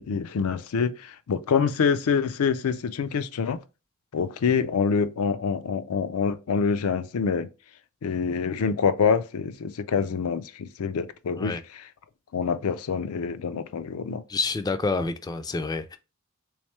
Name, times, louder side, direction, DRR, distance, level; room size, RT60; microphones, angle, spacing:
voice 1, 0.0-3.6 4.1-7.5 8.0-11.8 12.3-14.2, left 6 dB, 85° left, 0.4 m, -26 dB
voice 2, 14.3-16.0, left 3 dB, 20° left, 0.3 m, -28 dB
3.5 x 3.2 x 3.1 m
head